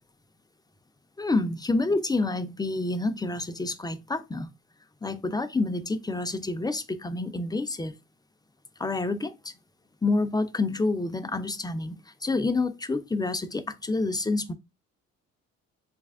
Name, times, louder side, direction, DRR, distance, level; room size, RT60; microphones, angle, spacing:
voice 1, 1.2-4.5 5.0-7.9 8.8-9.5 10.0-14.5, left 3 dB, 15° left, 0.5 m, -28 dB
3.3 x 3.2 x 3.6 m
cardioid pair, 90°, 30 cm